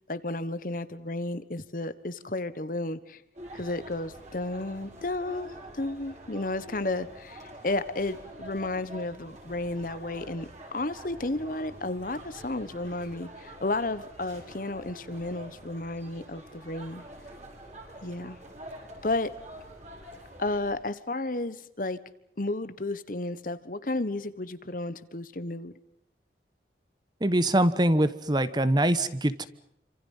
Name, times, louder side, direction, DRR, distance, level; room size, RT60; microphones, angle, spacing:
voice 1, 0.1-3.2 3.5-17.0 18.0-18.4 19.0-19.3 20.4-22.0 22.4-25.7, left 2 dB, 50° left, 14 dB, 1.3 m, -32 dB
sound 1, 3.3-20.7, right 1 dB, 40° right, 6.7 m, -46 dB
voice 2, 27.2-29.5, right 1 dB, 25° right, 14 dB, 1.1 m, -23 dB
28.0 x 26.5 x 5.6 m, 0.72 s
head